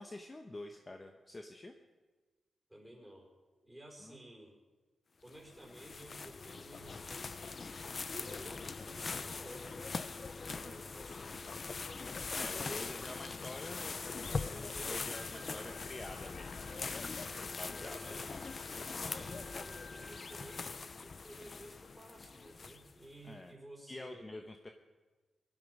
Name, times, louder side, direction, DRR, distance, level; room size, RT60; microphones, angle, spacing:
voice 1, 0.0-1.7 4.0-4.2 12.3-17.0 17.5-18.0 23.2-23.5 23.9-24.7, left 2 dB, 25° left, 5 dB, 1.0 m, -47 dB
voice 2, 2.7-3.3 3.6-4.6 5.2-11.5 12.4-13.1 14.6-15.9 17.7-18.3 19.0-24.3, right 1 dB, 5° right, -1 dB, 5.0 m, -54 dB
sound 1, 5.3-23.1, left 4 dB, 45° left, 0.6 m, -42 dB
Wind instrument woodwind instrument, 15.1-20.6, left 4 dB, 60° left, 3.7 m, -58 dB
22.5 x 12.0 x 5.4 m, 1.3 s
wide cardioid pair, 110°, 0 cm